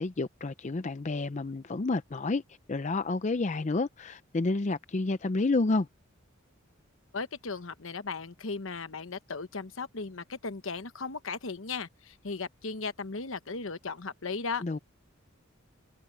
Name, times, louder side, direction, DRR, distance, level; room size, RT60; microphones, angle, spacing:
voice 1, 0.0-2.4 2.7-5.9 14.6-14.8, left 3 dB, 35° left, 0.5 m, -29 dB
voice 2, 7.1-14.6, left 4 dB, 70° left, 1.1 m, -36 dB
head